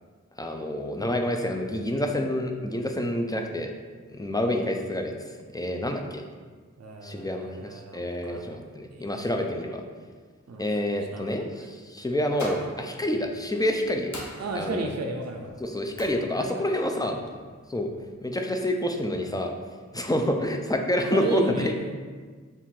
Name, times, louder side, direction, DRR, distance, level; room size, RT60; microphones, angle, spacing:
voice 1, 0.4-3.7 4.1-5.1 5.5-6.2 7.0-9.8 10.6-14.1 14.6-14.9 15.6-17.2 17.7-17.9 18.2-19.5 19.9-21.7, left 1 dB, 15° left, 3 dB, 0.4 m, -28 dB
voice 2, 6.8-9.1 10.5-10.6 11.1-11.3 14.4-15.5 16.4-16.6 16.9-17.3 21.1-22.0, right 2 dB, 60° right, 2 dB, 0.5 m, -33 dB
sound 1, 12.1-18.1, equal, 75° left, 0.8 m, -45 dB
4.5 x 2.5 x 3.6 m, 1.5 s
wide cardioid pair, 55°, 30 cm